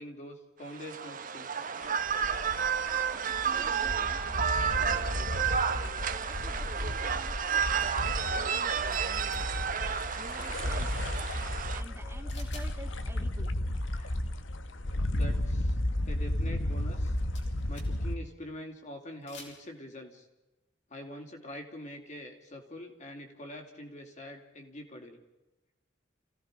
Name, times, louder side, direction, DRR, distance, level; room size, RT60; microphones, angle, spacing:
voice 1, 0.0-1.7 11.9-12.4 13.9-14.2 15.1-17.2 17.7-20.3 20.9-25.2, left 1 dB, 40° left, 3 dB, 3.6 m, -45 dB
sound 1, 0.7-11.8, right 7 dB, 45° right, 1.1 m, -31 dB
sound 2, 1.8-18.1, left 1 dB, 85° left, 1.3 m, -34 dB
voice 2, 2.8-5.5 6.0-9.4 10.2-11.2 11.7-13.6, right 1 dB, 15° right, 0 dB, 2.1 m, -50 dB
sound 3, 8.9-9.5 12.3-12.7 13.0-13.1 16.9-18.1 19.1-19.6, left 3 dB, 70° left, 6.6 m, -50 dB
29.0 x 17.0 x 5.3 m, 1.0 s
head